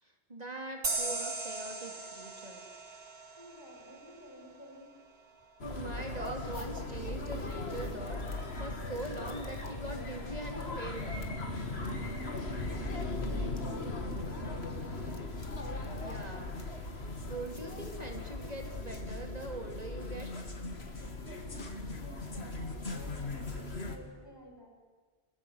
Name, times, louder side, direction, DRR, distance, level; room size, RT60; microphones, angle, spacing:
voice 1, 0.0-2.7 5.6-11.3 16.0-16.5 17.3-20.3, right 2 dB, 40° right, 2 dB, 3.2 m, -42 dB
sound 1, 0.8-4.2, right 3 dB, 80° right, 2.5 m, -38 dB
voice 2, 3.4-5.0 12.2-15.2 21.2-24.7, equal, 25° left, 1 dB, 5.6 m, -52 dB
sound 2, 5.6-24.0, left 2 dB, 85° left, 2.6 m, -38 dB
29.5 x 20.5 x 8.1 m, 1.4 s
omnidirectional pair, 1.0 m